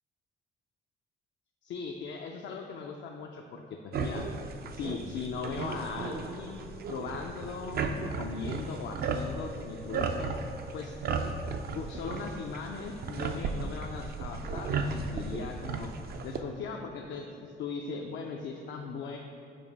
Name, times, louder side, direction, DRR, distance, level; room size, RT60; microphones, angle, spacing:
voice 1, 1.6-4.2 4.7-10.3 10.7-11.0 11.7-15.9 16.2-19.2, left 5 dB, 65° left, 1 dB, 0.5 m, -39 dB
sound 1, 3.9-16.4, right 4 dB, 50° right, 0.4 m, -35 dB
6.8 x 2.8 x 5.2 m, 2.5 s
cardioid pair, 90°, 20 cm